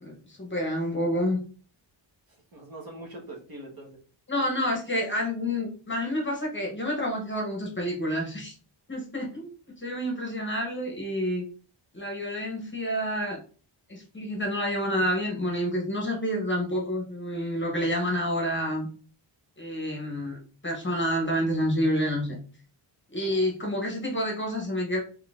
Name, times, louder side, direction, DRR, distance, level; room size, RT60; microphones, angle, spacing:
voice 1, 0.0-1.4 4.3-8.5 8.9-9.5 9.8-11.4 11.9-13.4 13.9-18.9 19.6-22.4 23.1-25.0, equal, 25° left, 0 dB, 0.8 m, -28 dB
voice 2, 2.3-4.0 23.2-23.5, right 1 dB, 50° right, 0 dB, 1.1 m, -43 dB
3.7 x 3.2 x 2.4 m, 0.39 s
wide cardioid pair, 165°, 48 cm